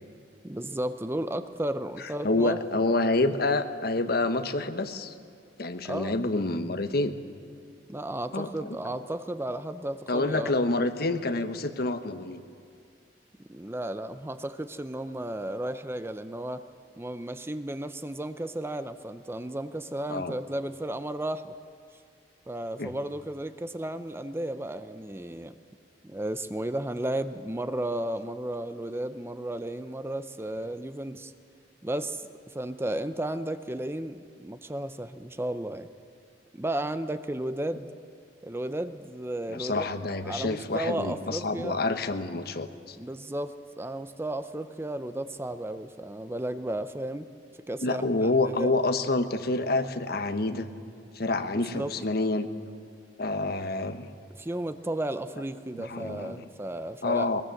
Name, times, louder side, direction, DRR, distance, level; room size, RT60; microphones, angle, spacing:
voice 1, 0.4-3.3 5.8-6.2 7.9-10.5 13.5-16.6 17.0-21.5 22.5-25.5 26.0-31.3 31.8-35.9 36.5-37.9 38.4-39.9 40.2-41.8 42.9-47.3 47.7-48.7 51.5-51.9 54.4-57.3, right 1 dB, 15° right, 11 dB, 0.6 m, -34 dB
voice 2, 2.2-5.1 5.6-7.2 8.3-8.7 10.1-12.4 20.1-20.4 22.8-22.9 39.5-43.0 47.8-50.7 51.1-52.5 53.2-54.1 55.7-56.4 57.0-57.4, left 2 dB, 60° left, 9 dB, 1.2 m, -28 dB
21.5 x 20.5 x 7.8 m, 2.2 s
head